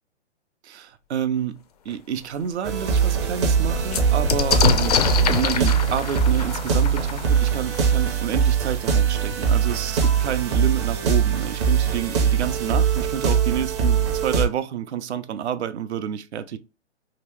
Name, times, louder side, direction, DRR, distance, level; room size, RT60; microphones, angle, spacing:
voice 1, 0.6-4.9 5.2-16.6, right 9 dB, 70° right, 0.5 m, -29 dB
sound 1, 1.9-2.0 2.4-2.5 2.8-8.3 9.3-9.4 9.7-10.3, left 7 dB, 35° left, 0.4 m, -26 dB
sound 2, 2.6-14.5, right 7 dB, 25° right, 0.5 m, -22 dB
2.9 x 2.7 x 3.3 m
hypercardioid pair, 135°, 35 cm